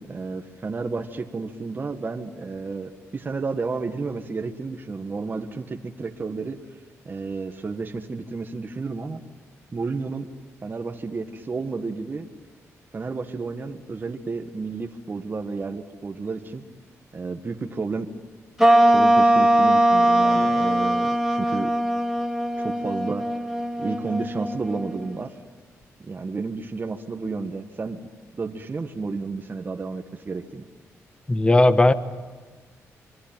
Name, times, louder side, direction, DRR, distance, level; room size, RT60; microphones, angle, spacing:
voice 1, 0.0-6.6 7.0-9.2 9.7-10.3 10.6-12.3 12.9-16.6 17.1-18.1 18.8-21.7 22.6-23.2 23.8-25.3 26.0-30.7, right 4 dB, 35° right, 4 dB, 1.7 m, -31 dB
sound 1, 18.6-25.3, right 1 dB, 5° right, 3.3 m, -21 dB
voice 2, 31.3-31.9, left 2 dB, 20° left, 11 dB, 1.3 m, -16 dB
27.0 x 23.0 x 9.1 m, 1.3 s
cardioid pair, 85°, 6 cm